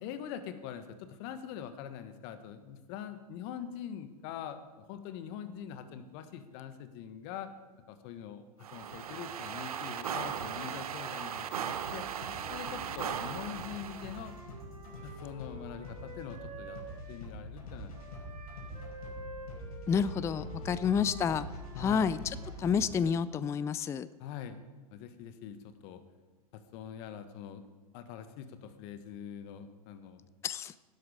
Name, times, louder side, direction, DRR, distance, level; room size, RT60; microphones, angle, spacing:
voice 1, 0.0-4.6 4.9-7.5 7.9-8.4 8.7-14.3 15.0-16.8 17.1-17.9 18.7-19.0 20.6-20.8 21.7-22.2 24.2-24.6 24.9-26.0 26.5-27.6 27.9-30.2, left 9 dB, 45° left, 10 dB, 1.4 m, -43 dB
sound 1, 8.6-14.3, right 8 dB, 70° right, 1.1 m, -38 dB
sound 2, 11.8-22.8, equal, 70° left, 5.2 m, -45 dB
Wind instrument woodwind instrument, 12.2-17.2 17.9-22.9, right 1 dB, 90° right, 3.9 m, -50 dB
voice 2, 19.9-21.5 21.8-24.1 30.4-30.7, left 7 dB, 15° left, 16 dB, 0.4 m, -30 dB
17.5 x 11.0 x 4.9 m, 1.3 s
hypercardioid pair, 100°, 19 cm